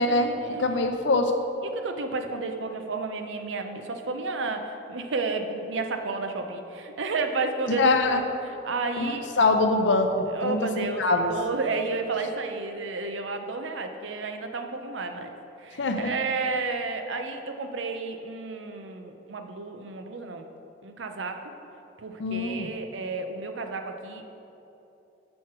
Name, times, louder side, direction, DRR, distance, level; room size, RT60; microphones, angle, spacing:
voice 1, 0.0-0.6 1.6-9.4 10.3-20.4 20.8-21.4 22.0-24.2, right 3 dB, 85° right, 6 dB, 0.6 m, -32 dB
voice 2, 0.6-1.3 7.7-8.2 9.0-11.3 15.8-16.1 22.2-22.7, left 2 dB, 80° left, 6 dB, 0.6 m, -24 dB
6.3 x 4.7 x 5.8 m, 2.9 s
head